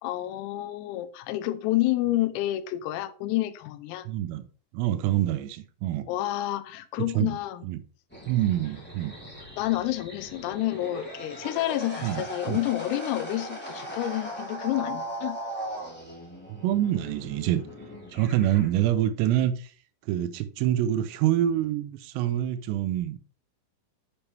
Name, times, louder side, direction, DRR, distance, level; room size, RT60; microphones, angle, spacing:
voice 1, 0.0-4.1 6.1-7.6 9.6-15.4, left 15 dB, 90° left, 3.4 m, -29 dB
voice 2, 4.1-4.5 4.7-6.1 7.0-7.4 7.6-7.8 8.3-9.1 12.0-12.6 16.5-17.6 18.1-19.7 20.0-23.2, right 12 dB, 85° right, 3.4 m, -26 dB
sound 1, 8.1-18.7, right 1 dB, 5° left, 1.1 m, -39 dB
7.0 x 6.8 x 3.3 m
omnidirectional pair, 6.0 m